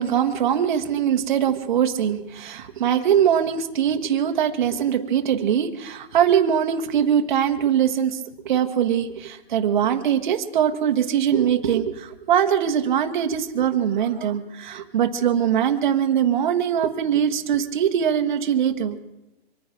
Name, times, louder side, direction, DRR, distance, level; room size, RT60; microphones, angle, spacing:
voice 1, 0.0-19.0, right 9 dB, 45° right, 6 dB, 1.3 m, -22 dB
24.5 x 9.5 x 5.9 m, 0.98 s
hypercardioid pair, 160°, 33 cm